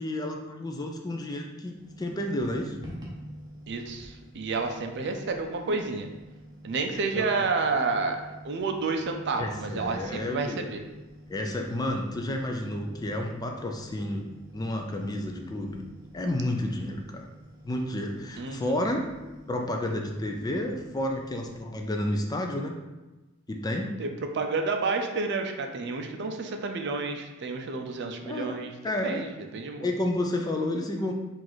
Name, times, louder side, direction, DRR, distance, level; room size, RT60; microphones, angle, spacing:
voice 1, 0.0-2.8 7.2-7.3 9.4-10.6 11.3-14.3 14.5-15.8 16.1-17.3 17.6-19.0 19.5-22.8 23.5-23.9 28.2-28.6 28.8-29.3 29.8-31.1, left 1 dB, 20° left, 2 dB, 0.3 m, -31 dB
sound 1, 1.7-21.6, equal, 20° right, 0.8 m, -48 dB
voice 2, 3.7-6.1 6.6-8.2 8.4-10.8 18.4-18.7 24.0-28.7 29.0-29.9, right 4 dB, 55° right, 5 dB, 0.5 m, -30 dB
4.6 x 2.5 x 3.9 m, 1.1 s
head